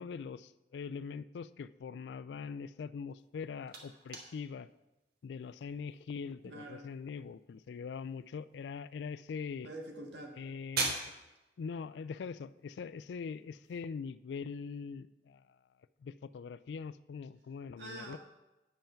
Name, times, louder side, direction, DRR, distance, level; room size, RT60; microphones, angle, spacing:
voice 1, 0.0-4.7 5.2-9.7 10.4-11.1 11.6-15.4 16.0-18.2, left 5 dB, 70° left, 16 dB, 0.3 m, -42 dB
sound 1, 3.1-13.8, right 3 dB, 60° right, 1.5 m, -45 dB
voice 2, 6.4-6.9 9.6-10.4 17.8-18.2, right 1 dB, 80° right, 1 dB, 1.7 m, -45 dB
8.9 x 5.5 x 5.7 m, 1.0 s
head